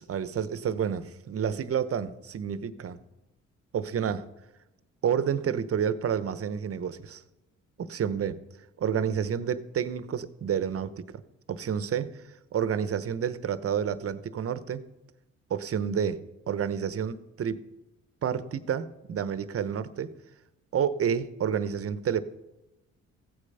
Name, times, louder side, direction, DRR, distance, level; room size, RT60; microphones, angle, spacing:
voice 1, 0.0-3.0 3.7-4.3 5.0-7.2 7.8-8.4 8.8-11.1 11.5-14.8 15.5-17.6 18.2-20.1 20.7-22.2, right 8 dB, 50° right, 15 dB, 1.0 m, -29 dB
15.5 x 8.5 x 5.5 m, 0.97 s
cardioid pair, 90°, 30 cm